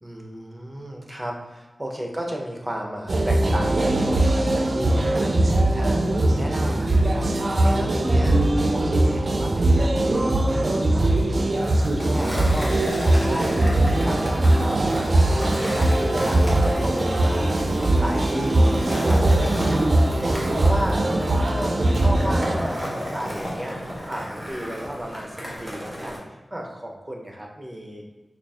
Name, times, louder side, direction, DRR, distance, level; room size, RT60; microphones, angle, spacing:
voice 1, 0.0-8.4 8.7-19.8 20.2-23.7 24.1-26.2 26.5-28.0, equal, 20° right, 0 dB, 0.6 m, -33 dB
sound 1, 3.1-22.6, right 1 dB, 60° right, 0.4 m, -21 dB
Skateboard, 11.5-26.2, equal, ahead, 1.1 m, -33 dB
3.9 x 2.3 x 3.4 m, 1.2 s
wide cardioid pair, 70°, 0 cm